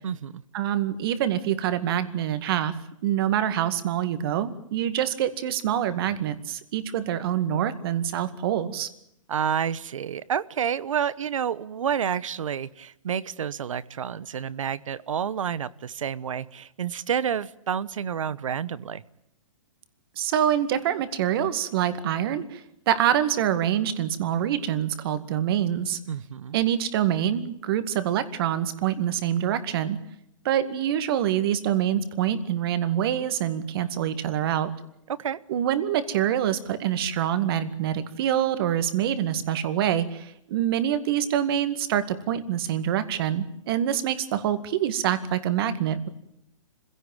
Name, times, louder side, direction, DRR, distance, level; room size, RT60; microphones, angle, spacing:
voice 1, 0.0-0.4 9.3-19.0 26.1-26.6 35.1-35.4, right 8 dB, 80° right, 19 dB, 1.0 m, -29 dB
voice 2, 0.5-2.7 3.0-8.9 20.2-26.0 26.5-30.0 30.4-34.7 35.5-46.1, right 10 dB, 45° right, 11 dB, 2.1 m, -25 dB
26.0 x 16.5 x 9.1 m, 0.78 s
hypercardioid pair, 150°, 16 cm